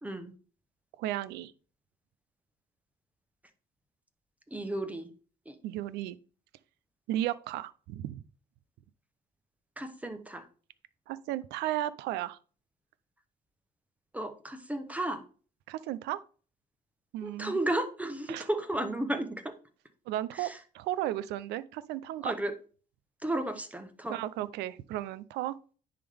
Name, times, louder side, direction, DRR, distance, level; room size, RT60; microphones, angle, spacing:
voice 1, 0.0-0.3 4.5-5.1 5.5-5.6 9.8-10.5 14.1-15.2 17.2-19.5 20.3-20.6 22.2-22.5 23.2-24.2, right 1 dB, 10° right, 0.9 m, -33 dB
voice 2, 1.0-1.5 5.6-6.2 7.1-8.2 11.1-12.4 15.7-16.2 17.1-17.6 18.3-18.5 20.1-22.3 24.1-25.6, right 13 dB, 85° right, 0.5 m, -34 dB
10.0 x 3.8 x 3.4 m
cardioid pair, 110°, 17 cm